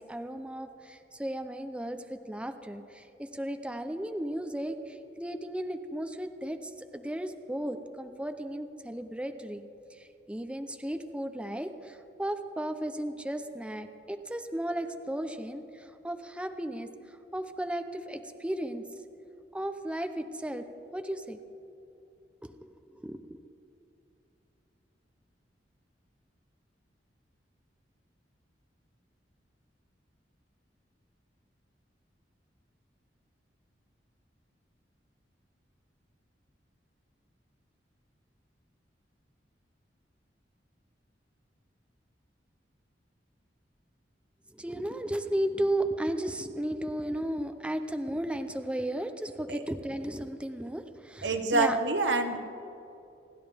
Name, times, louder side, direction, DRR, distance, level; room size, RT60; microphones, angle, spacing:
voice 1, 0.0-9.6 9.9-18.8 19.5-20.7 20.9-21.4 22.4-23.4 44.5-51.8, right 1 dB, 5° right, 8 dB, 0.6 m, -35 dB
voice 2, 51.2-52.4, right 3 dB, 85° right, 6 dB, 1.1 m, -26 dB
29.5 x 11.0 x 3.4 m, 2.7 s
head